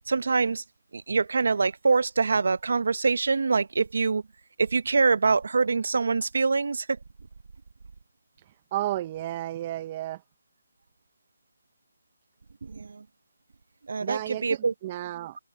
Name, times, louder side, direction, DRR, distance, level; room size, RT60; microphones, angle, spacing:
voice 1, 0.1-0.6 0.9-4.2 4.6-7.0 12.6-13.0 13.9-14.7, right 4 dB, 70° right, 0.9 m, -24 dB
voice 2, 8.7-10.2 14.0-15.4, right 14 dB, 30° right, 0.8 m, -32 dB
hypercardioid pair, 160°, 0 cm